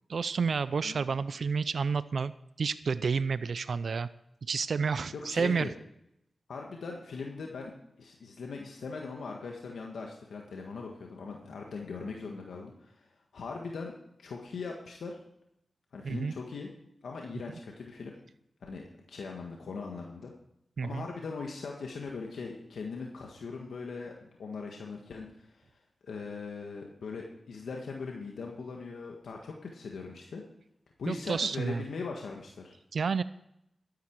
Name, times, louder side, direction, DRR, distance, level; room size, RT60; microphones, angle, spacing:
voice 1, 0.1-2.3 2.6-4.1 4.5-5.7 16.0-16.3 20.8-21.1 31.1-31.8 32.9-33.2, right 5 dB, 75° right, 15 dB, 0.5 m, -30 dB
voice 2, 5.1-5.7 6.5-7.7 8.0-13.1 13.3-13.9 14.2-15.2 15.9-16.7 17.0-18.1 18.7-20.3 20.8-25.6 26.0-30.4 31.0-32.7, left 4 dB, 90° left, 0 dB, 1.6 m, -40 dB
12.5 x 10.5 x 4.6 m, 0.79 s
cardioid pair, 50°, 0 cm